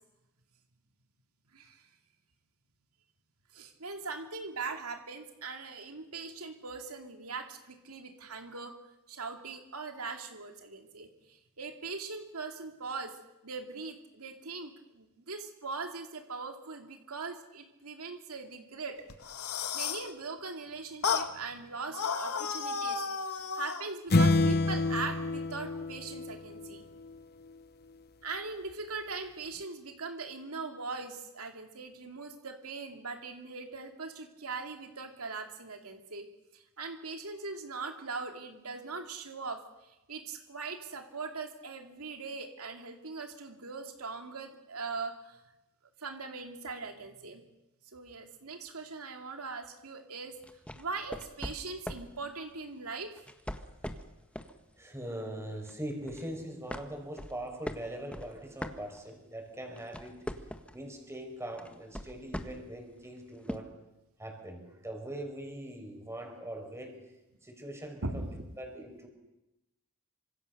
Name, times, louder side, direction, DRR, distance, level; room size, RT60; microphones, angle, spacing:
voice 1, 1.5-1.9 3.5-8.7 9.1-13.2 13.4-19.0 19.7-23.0 23.5-26.8 28.2-36.3 36.5-45.4 46.0-47.4 47.9-50.3 50.8-53.1 68.0-68.5, right 4 dB, 85° right, 4 dB, 2.5 m, -40 dB
sound 1, 19.1-20.1 21.0-21.3 21.9-23.9, left 6 dB, 90° left, 1.8 m, -33 dB
sound 2, 24.1-26.8, left 2 dB, 50° left, 0.8 m, -27 dB
sound 3, 50.4-52.1 53.2-54.6 55.0-55.2 55.7-56.3 56.7-59.3 59.6-60.8 61.6-62.7 63.5-63.6, equal, 5° left, 1.6 m, -41 dB
voice 2, 54.8-60.2 60.7-63.7 64.2-67.0 67.4-68.3 68.6-69.1, right 1 dB, 15° right, 3 dB, 5.5 m, -41 dB
27.5 x 25.5 x 6.7 m, 0.96 s
head